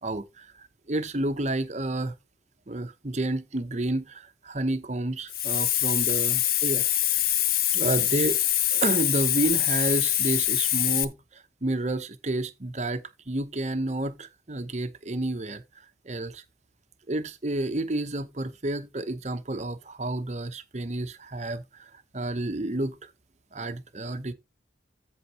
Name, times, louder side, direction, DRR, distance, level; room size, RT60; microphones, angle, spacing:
voice 1, 0.0-2.1 2.7-6.9 7.7-8.4 8.7-15.6 16.0-16.4 17.1-23.1 23.5-24.3, right 2 dB, 40° right, 0.9 m, -30 dB
Hiss, 5.3-11.0, left 12 dB, 50° left, 0.7 m, -24 dB
13.5 x 5.2 x 3.0 m
head